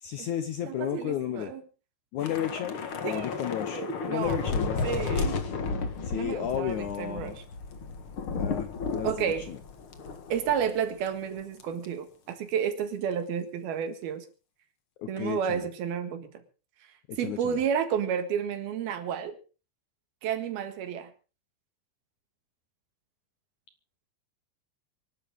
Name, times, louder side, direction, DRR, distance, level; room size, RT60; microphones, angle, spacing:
voice 1, 0.0-1.5 2.1-3.8 4.1-4.9 6.1-7.4 8.4-9.1 9.5-9.6 15.0-15.7 17.1-17.6, left 10 dB, 75° left, 10 dB, 1.8 m, -33 dB
voice 2, 0.7-1.6 3.0-3.4 3.7-4.5 4.8-5.4 6.1-7.4 9.0-9.5 10.3-14.3 15.1-16.3 17.2-19.3 20.2-21.1, right 8 dB, 70° right, 8 dB, 3.6 m, -31 dB
Thunder / Rain, 2.2-10.8 11.1-11.2 11.6-11.9, left 4 dB, 50° left, 1.6 m, -33 dB
25.5 x 12.0 x 3.7 m, 0.35 s
omnidirectional pair, 4.8 m